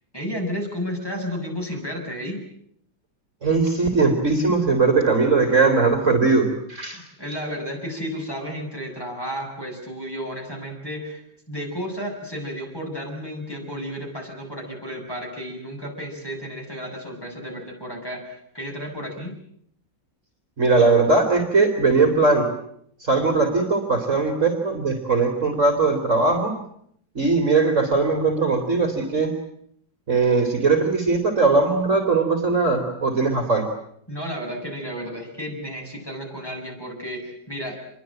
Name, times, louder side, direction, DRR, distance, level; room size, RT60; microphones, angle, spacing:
voice 1, 0.1-2.4 6.9-19.4 34.1-37.8, equal, 10° left, 1 dB, 7.8 m, -32 dB
voice 2, 3.4-7.0 20.6-22.5 23.0-26.5 27.1-29.3 30.1-33.7, right 3 dB, 40° right, 6 dB, 3.4 m, -20 dB
27.0 x 23.0 x 9.0 m, 0.70 s
omnidirectional pair, 2.1 m